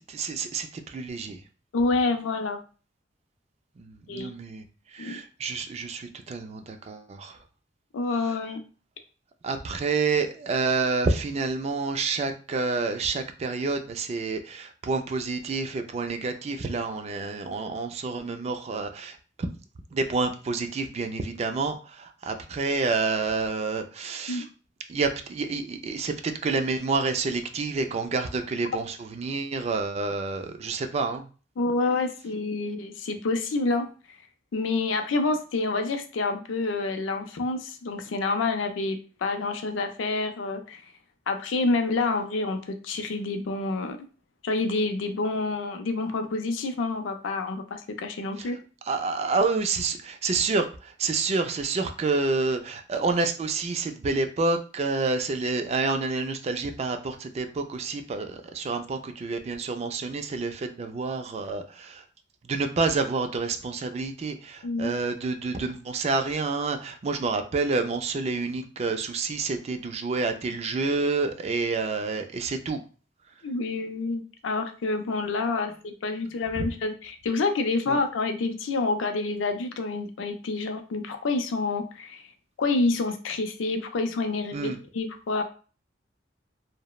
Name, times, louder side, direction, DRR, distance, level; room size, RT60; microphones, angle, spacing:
voice 1, 0.0-1.4 3.8-4.6 4.9-7.4 9.4-19.2 19.9-24.4 24.9-31.3 48.4-48.5 48.9-62.0 62.4-72.8 77.9-78.0 84.5-84.8, right 3 dB, 35° right, 7 dB, 0.3 m, -28 dB
voice 2, 1.7-2.6 4.1-4.3 5.0-5.2 7.9-8.6 24.3-24.5 31.6-33.9 34.5-40.8 41.3-44.0 44.4-48.6 64.6-64.9 73.4-82.2 82.6-84.7 84.9-85.4, left 3 dB, 90° left, 7 dB, 0.4 m, -28 dB
2.9 x 2.0 x 2.2 m, 0.36 s
head